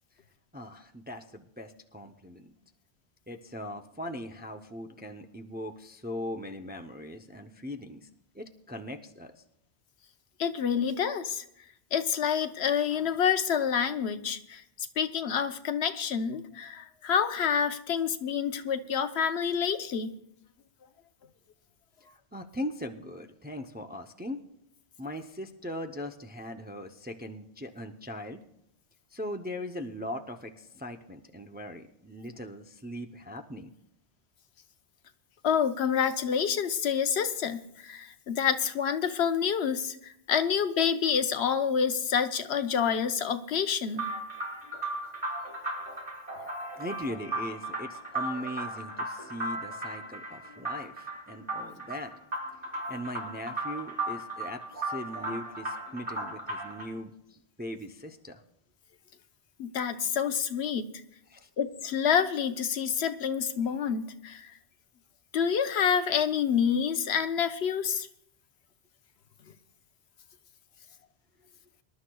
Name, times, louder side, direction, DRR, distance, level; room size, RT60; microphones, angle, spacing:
voice 1, 0.5-2.5 3.3-8.1 8.3-9.4 22.3-24.4 25.0-28.4 29.1-33.7 46.8-52.1 52.9-58.4 61.3-61.5, equal, 10° right, 5 dB, 0.5 m, -40 dB
voice 2, 10.4-11.4 11.9-20.1 35.4-44.0 59.6-60.9 61.6-64.5 65.3-68.1, left 7 dB, 85° left, 9 dB, 1.0 m, -28 dB
sound 1, 43.9-56.9, right 2 dB, 40° right, 3.5 m, -36 dB
25.5 x 11.5 x 2.3 m, 0.76 s
omnidirectional pair, 1.0 m